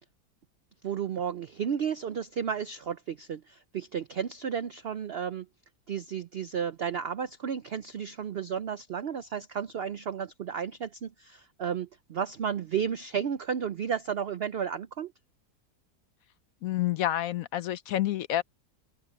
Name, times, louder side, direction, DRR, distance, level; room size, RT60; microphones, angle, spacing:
voice 1, 0.8-5.5 5.9-15.1, right 7 dB, 75° right, 0.5 m, -33 dB
voice 2, 16.6-18.4, left 13 dB, 70° left, 0.9 m, -28 dB
omnidirectional pair, 1.8 m